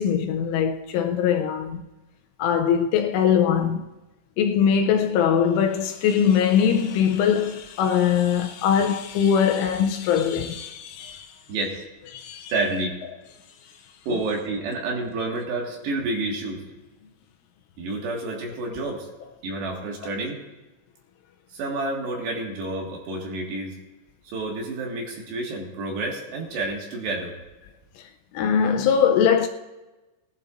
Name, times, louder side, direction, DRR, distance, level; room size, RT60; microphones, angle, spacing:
voice 1, 0.0-1.8 2.4-3.9 4.4-11.3 12.1-12.5 14.1-14.2 28.3-29.5, left 8 dB, 80° left, 2.9 m, -21 dB
voice 2, 11.5-11.8 12.5-13.0 14.1-16.6 17.8-19.1 19.4-20.4 21.5-23.8 24.3-27.3, right 2 dB, 65° right, 3.6 m, -29 dB
20.0 x 12.0 x 2.5 m
omnidirectional pair, 5.9 m